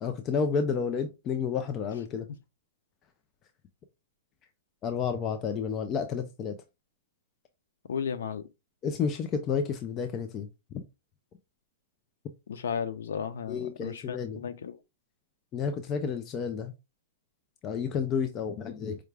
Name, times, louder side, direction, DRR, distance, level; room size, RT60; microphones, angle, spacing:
voice 1, 0.0-2.3 4.8-6.6 8.8-10.5 10.7-10.8 13.5-14.4 15.5-16.7 17.6-19.0, left 6 dB, 20° left, 0.3 m, -31 dB
voice 2, 7.9-8.5 12.5-14.8, left 7 dB, 90° left, 0.6 m, -34 dB
4.7 x 2.3 x 3.2 m
supercardioid pair, 180°, 0 cm